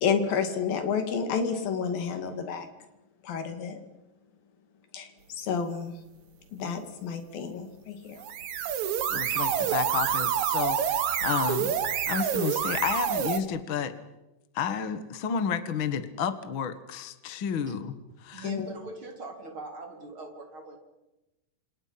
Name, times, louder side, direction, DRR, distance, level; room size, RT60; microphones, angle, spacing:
voice 1, 0.0-2.7 3.2-3.8 4.9-5.9 6.5-8.2 18.4-18.7, left 6 dB, 75° left, 7 dB, 4.2 m, -30 dB
sound 1, 8.1-13.4, right 9 dB, 60° right, 2.6 m, -27 dB
voice 2, 9.1-13.9 14.5-18.5, left 7 dB, 50° left, 10 dB, 1.5 m, -31 dB
voice 3, 18.1-20.8, right 2 dB, 35° right, 3 dB, 4.3 m, -42 dB
29.5 x 27.5 x 5.8 m, 0.99 s
omnidirectional pair, 4.1 m